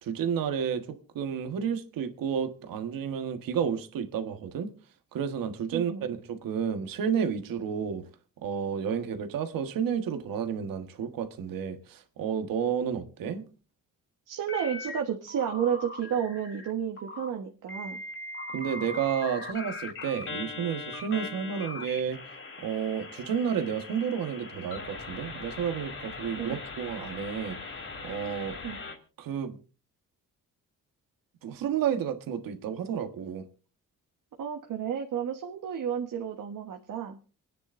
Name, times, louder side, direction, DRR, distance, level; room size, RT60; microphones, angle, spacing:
voice 1, 0.0-4.7 5.1-8.1 8.4-13.4 18.5-22.2 22.6-27.6 28.0-28.6 29.2-29.6 31.4-33.5, right 7 dB, 90° right, 1.6 m, -31 dB
voice 2, 5.7-6.1 14.3-18.0 26.4-26.6 28.6-28.8 34.4-37.2, right 8 dB, 70° right, 1.4 m, -31 dB
sound 1, 14.5-15.0 15.3-16.7 17.0-17.3 17.7-29.0, left 3 dB, 40° left, 3.2 m, -40 dB
27.5 x 9.8 x 2.6 m
cardioid pair, 100°, 33 cm